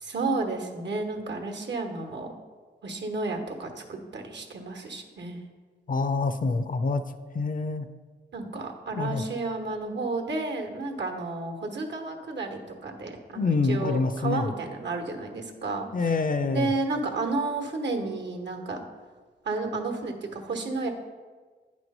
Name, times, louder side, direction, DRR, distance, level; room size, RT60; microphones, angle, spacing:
voice 1, 0.0-2.3 2.8-5.4 8.3-16.1 16.5-18.8 19.4-20.9, right 3 dB, 70° right, 4 dB, 1.1 m, -32 dB
voice 2, 5.9-7.0 7.3-7.9 9.0-9.2 13.4-14.5 15.9-16.7, left 3 dB, 45° left, 11 dB, 0.5 m, -26 dB
9.4 x 3.1 x 5.3 m, 1.4 s
cardioid pair, 50°, 19 cm